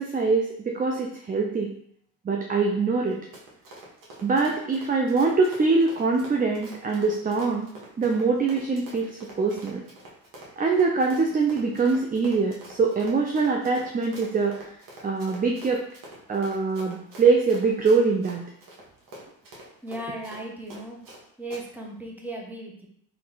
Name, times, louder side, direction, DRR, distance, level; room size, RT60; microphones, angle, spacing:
voice 1, 0.0-1.7 2.2-3.2 4.2-7.7 8.0-9.8 10.6-14.7 15.0-15.8 16.3-18.4, right 4 dB, 20° right, 2 dB, 0.5 m, -23 dB
Run, 3.1-21.2 21.5-21.6, right 1 dB, 50° right, 1.5 m, -45 dB
voice 2, 19.8-21.0 21.4-22.9, right 1 dB, 5° right, -1 dB, 1.1 m, -36 dB
3.2 x 2.8 x 3.9 m, 0.67 s
supercardioid pair, 60°, 41 cm